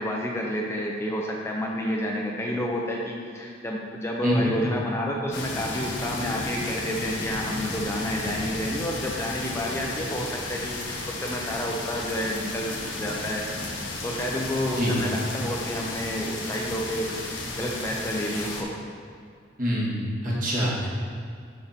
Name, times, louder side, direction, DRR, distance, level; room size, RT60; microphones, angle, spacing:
voice 1, 0.0-13.7 14.0-18.7, equal, 15° left, -2 dB, 0.6 m, -30 dB
sound 1, 5.3-18.6, left 2 dB, 80° left, 1.2 m, -34 dB
voice 2, 19.6-20.9, equal, 45° right, -6 dB, 2.0 m, -25 dB
7.1 x 6.6 x 4.3 m, 2.3 s
head